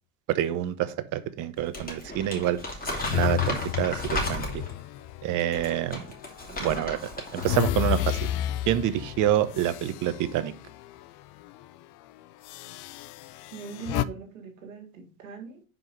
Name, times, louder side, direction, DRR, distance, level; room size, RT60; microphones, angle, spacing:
voice 1, 0.3-2.6 3.1-4.5 5.2-6.0 6.6-7.0 7.3-8.3 8.7-10.5, right 12 dB, 50° right, 0.9 m, -27 dB
Crumpling crinkling, 1.6-4.8 5.4-7.7 7.9-8.2, left 1 dB, 20° left, 2.7 m, -34 dB
sound 1, 3.0-6.3 6.8-11.1 11.4-11.6 12.4-14.0, left 14 dB, 55° left, 0.5 m, -32 dB
voice 2, 6.5-6.8 13.5-15.6, right 5 dB, 85° right, 1.9 m, -41 dB
5.4 x 4.7 x 5.2 m
hypercardioid pair, 75°, 39 cm